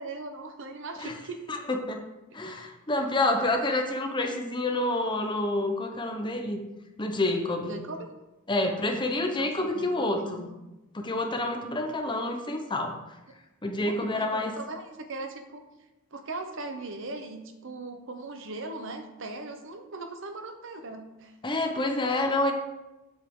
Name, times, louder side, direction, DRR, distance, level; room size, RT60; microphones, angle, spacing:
voice 1, 0.0-1.4 3.4-3.5 7.6-8.1 9.3-10.4 13.8-15.6 16.1-21.3, right 2 dB, 60° right, 6 dB, 0.9 m, -39 dB
voice 2, 1.5-2.0 2.3-6.6 7.0-7.8 8.5-10.5 10.9-12.9 13.6-14.5 21.4-22.5, left 2 dB, 20° left, 3 dB, 0.8 m, -28 dB
8.0 x 7.4 x 3.7 m, 1.0 s
head